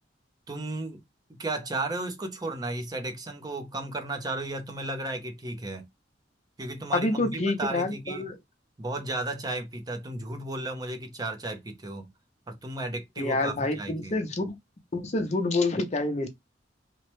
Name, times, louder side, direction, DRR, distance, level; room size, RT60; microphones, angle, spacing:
voice 1, 0.5-1.0 1.3-5.8 6.6-8.3 8.8-12.1 12.5-14.2, right 2 dB, 20° right, 0.6 m, -34 dB
voice 2, 6.9-8.4 13.2-14.6 14.9-16.3, left 2 dB, 40° left, 0.6 m, -27 dB
3.0 x 2.1 x 3.0 m
head